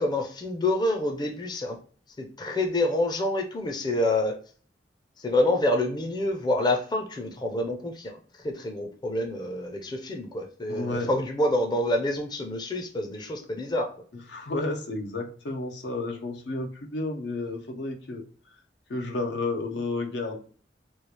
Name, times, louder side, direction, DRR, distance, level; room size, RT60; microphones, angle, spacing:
voice 1, 0.0-1.8 2.2-4.4 5.2-8.2 8.4-13.9, left 1 dB, 25° left, 2 dB, 0.5 m, -27 dB
voice 2, 10.7-11.1 14.3-18.2 18.9-20.4, left 2 dB, 80° left, 4 dB, 0.6 m, -31 dB
3.1 x 2.4 x 3.2 m, 0.41 s
head